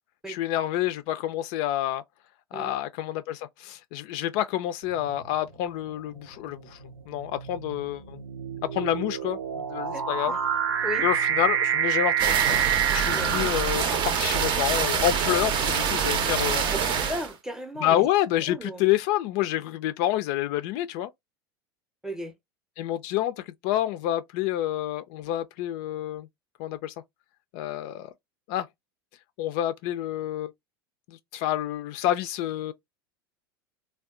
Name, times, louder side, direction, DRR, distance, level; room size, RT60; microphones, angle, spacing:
voice 1, 0.3-2.0 2.5-6.8 7.1-8.2 8.6-10.4 11.0-12.7 12.9-16.7 17.8-21.1 22.8-26.3 26.6-26.9 27.5-28.1 28.5-28.7 29.4-30.5 31.1-32.7, left 13 dB, 50° left, 0.4 m, -28 dB
sound 1, 4.9-5.3 6.2-14.4, right 9 dB, 75° right, 0.6 m, -28 dB
voice 2, 9.9-10.4 10.8-11.1 13.1-13.3 15.8-16.0 16.7-18.0 18.5-18.9 22.0-22.3, equal, 5° right, 0.6 m, -36 dB
sound 2, 12.2-17.3, right 7 dB, 40° right, 0.6 m, -26 dB
3.4 x 2.3 x 2.4 m
figure-of-eight pair, 80°, 13 cm